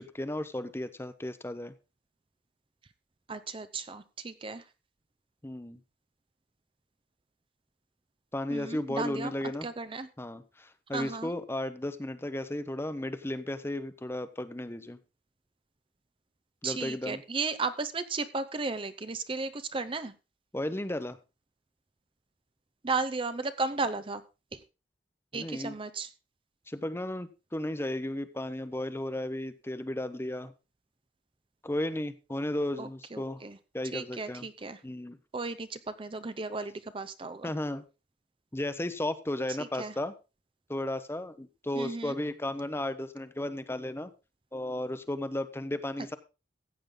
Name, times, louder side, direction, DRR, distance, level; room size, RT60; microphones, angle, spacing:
voice 1, 0.0-1.7 5.4-5.8 8.3-9.7 10.2-15.0 16.6-17.2 20.5-21.2 25.3-25.7 26.7-30.5 31.6-33.4 33.7-34.5 34.8-35.2 37.4-37.8 38.5-40.1 40.7-44.1 44.5-46.2, left 1 dB, 15° left, 12 dB, 0.8 m, -34 dB
voice 2, 3.3-4.6 8.5-9.3 9.6-10.1 10.9-11.3 16.6-20.1 22.8-24.2 24.5-24.6 25.3-26.1 32.8-33.6 33.9-34.8 35.3-37.5 39.6-39.9 41.7-42.2, right 3 dB, 30° right, 11 dB, 0.7 m, -34 dB
14.5 x 8.6 x 3.8 m, 0.29 s
head